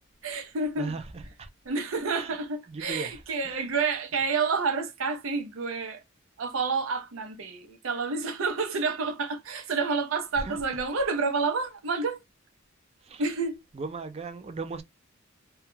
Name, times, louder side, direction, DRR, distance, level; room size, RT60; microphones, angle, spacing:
voice 1, 0.2-0.9 1.7-6.0 6.4-12.2 13.2-13.6, right 4 dB, 75° right, 0.6 m, -29 dB
voice 2, 0.8-1.5 2.1-2.4 2.7-3.7 10.3-10.6 13.0-13.2 13.7-14.8, right 3 dB, 30° right, 0.3 m, -37 dB
2.3 x 2.1 x 3.0 m
head